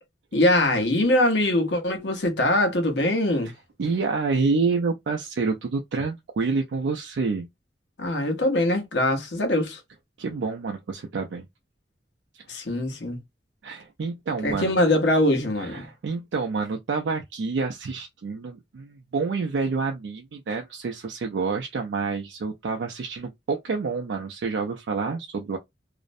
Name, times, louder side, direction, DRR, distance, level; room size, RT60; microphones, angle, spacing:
voice 1, 0.3-3.5 8.0-9.8 12.5-13.2 14.4-15.9, left 1 dB, 70° left, 0.8 m, -22 dB
voice 2, 3.8-7.5 10.2-11.5 13.6-14.7 15.6-25.6, right 4 dB, 80° right, 0.4 m, -28 dB
2.5 x 2.0 x 2.5 m
head